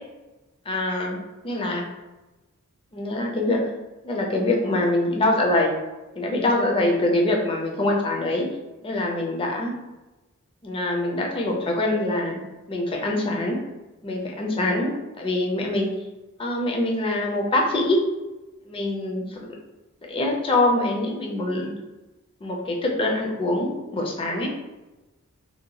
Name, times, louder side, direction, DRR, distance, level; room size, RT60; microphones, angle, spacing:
voice 1, 0.7-1.2 1.4-1.9 2.9-3.7 4.0-5.8 6.2-8.5 8.8-9.7 10.6-12.4 12.7-13.6 14.0-15.9 16.4-18.0 18.7-19.5 20.0-21.7 22.4-24.5, left 1 dB, 25° left, 0 dB, 0.4 m, -24 dB
2.7 x 2.1 x 2.8 m, 1.1 s
head